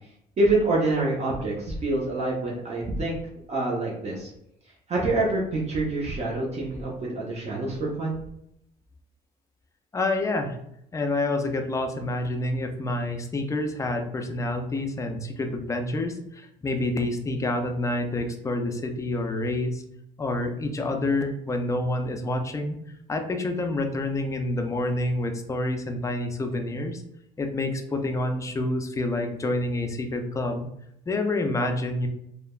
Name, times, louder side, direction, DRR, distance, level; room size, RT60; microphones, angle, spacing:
voice 1, 0.4-3.1 3.5-4.3 4.9-8.2, right 2 dB, 40° right, -3 dB, 0.6 m, -26 dB
voice 2, 9.9-10.6 10.9-19.8 20.2-22.8 23.1-27.0 27.4-30.7 31.1-32.1, left 2 dB, 20° left, 5 dB, 0.4 m, -28 dB
3.2 x 2.1 x 2.3 m, 0.76 s
cardioid pair, 110°, 17 cm